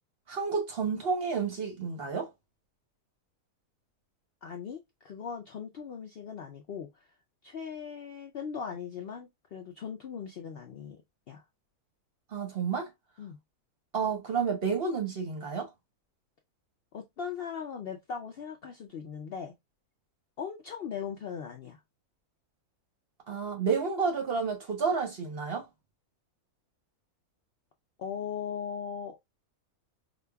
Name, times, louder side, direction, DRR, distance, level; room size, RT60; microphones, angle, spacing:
voice 1, 0.3-2.3 12.3-12.9 13.9-15.7 23.3-25.7, right 5 dB, 50° right, 0.8 m, -30 dB
voice 2, 4.4-7.0 7.4-11.0 11.3-11.4 13.2-13.4 16.9-19.5 20.4-21.8 28.0-29.2, left 7 dB, 65° left, 0.6 m, -39 dB
5.0 x 2.3 x 2.2 m
omnidirectional pair, 1.6 m